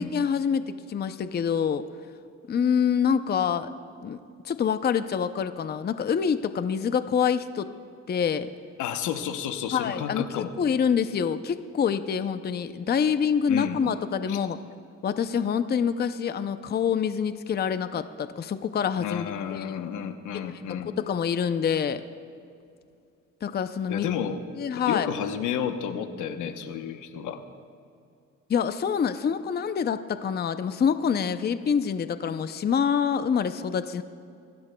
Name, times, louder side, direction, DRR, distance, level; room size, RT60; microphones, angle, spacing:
voice 1, 0.0-1.8 2.5-3.7 4.0-4.2 4.4-7.7 8.1-8.5 9.7-14.6 15.0-19.6 21.0-22.0 23.4-24.1 24.6-25.1 28.5-34.0, left 7 dB, 35° left, 11 dB, 0.5 m, -26 dB
voice 2, 8.8-10.5 13.5-13.8 14.3-14.4 19.0-20.9 23.9-24.4 24.9-27.4, left 8 dB, 85° left, 8 dB, 0.9 m, -31 dB
22.0 x 16.0 x 2.3 m, 2.4 s
cardioid pair, 90°, 30 cm